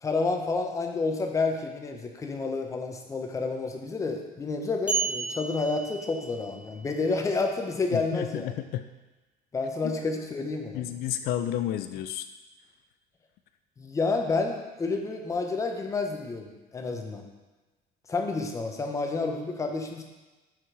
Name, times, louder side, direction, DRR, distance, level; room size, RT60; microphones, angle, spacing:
voice 1, 0.0-8.6 9.5-10.8 13.8-17.3 18.1-20.0, left 3 dB, 20° left, 3 dB, 0.7 m, -29 dB
sound 1, 4.9-6.7, right 6 dB, 10° right, 1.4 m, -32 dB
voice 2, 7.9-8.8 9.8-9.9 10.7-12.3, left 11 dB, 75° left, 9 dB, 0.4 m, -31 dB
6.2 x 5.0 x 4.7 m, 1.2 s
cardioid pair, 160°, 16 cm